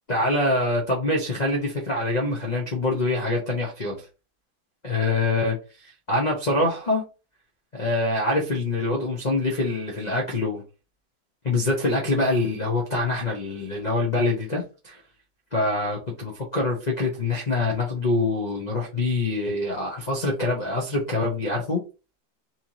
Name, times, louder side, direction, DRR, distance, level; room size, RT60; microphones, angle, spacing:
voice 1, 0.1-4.1 4.8-7.0 7.7-10.6 11.4-15.0 15.5-21.8, left 2 dB, 60° left, 0.4 m, -25 dB
4.3 x 3.0 x 2.7 m
omnidirectional pair, 2.2 m